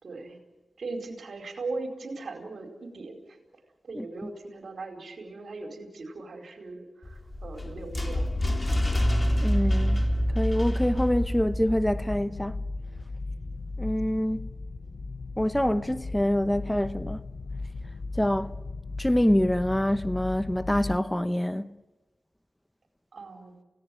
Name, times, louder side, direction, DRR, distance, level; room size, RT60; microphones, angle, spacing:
voice 1, 0.0-0.4 0.8-3.4 3.8-8.2 9.0-9.1 23.1-23.6, right 3 dB, 75° right, 4.7 m, -39 dB
sound 1, 7.0-12.2, equal, 30° left, 3.8 m, -27 dB
sound 2, 7.8-21.0, left 3 dB, 60° left, 1.0 m, -37 dB
voice 2, 9.4-10.0 10.3-12.6 13.8-14.5 15.4-17.2 18.2-18.5 19.0-21.7, left 1 dB, 10° left, 0.9 m, -25 dB
29.0 x 18.0 x 7.8 m
cardioid pair, 55°, 0 cm